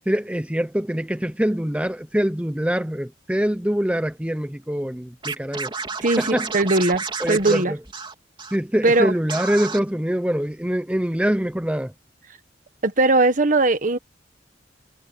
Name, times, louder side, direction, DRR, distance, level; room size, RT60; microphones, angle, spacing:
voice 1, 0.1-5.7 6.2-6.5 7.2-7.8 8.5-11.9, equal, 5° right, 0.8 m, -24 dB
Scratching (performance technique), 5.2-8.6 8.8-9.0 9.3-9.8, right 4 dB, 30° right, 3.6 m, -31 dB
voice 2, 6.0-7.7 8.8-9.1 12.8-14.0, right 2 dB, 45° right, 1.4 m, -19 dB
head